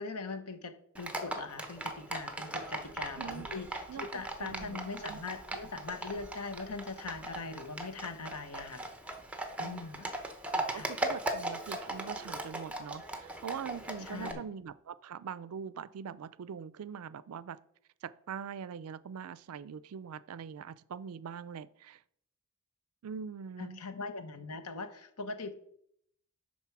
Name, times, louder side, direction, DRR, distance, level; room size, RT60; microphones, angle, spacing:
voice 1, 0.0-8.8 9.6-10.1 10.7-10.9 14.0-14.4 23.6-25.6, left 4 dB, 85° left, 9 dB, 1.0 m, -41 dB
Livestock farm animals working animals, 1.0-14.3, right 1 dB, 5° right, 0.8 m, -39 dB
voice 2, 3.2-3.5 3.9-5.2 9.6-9.8 10.5-17.6 18.0-22.0 23.0-23.8, right 7 dB, 70° right, 17 dB, 0.4 m, -43 dB
11.5 x 4.4 x 4.7 m, 0.71 s
head